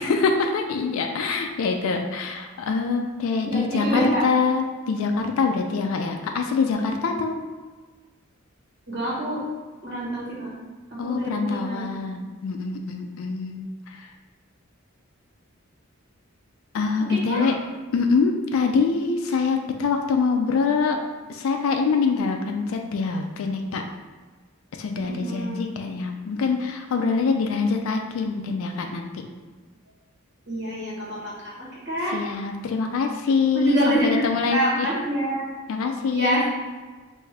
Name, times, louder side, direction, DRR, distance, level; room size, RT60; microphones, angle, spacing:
voice 1, 0.0-7.4 11.0-14.1 16.7-17.6 17.9-21.0 21.3-23.8 24.8-29.1 32.1-34.9 35.7-36.4, left 4 dB, 75° left, 4 dB, 0.3 m, -24 dB
voice 2, 3.4-4.3 8.9-9.5 9.8-10.5 10.9-11.9 17.1-17.5 25.0-25.6 30.5-32.2 33.5-35.5 36.1-36.4, right 1 dB, 55° right, -7 dB, 1.4 m, -26 dB
3.5 x 2.6 x 3.2 m, 1.3 s
head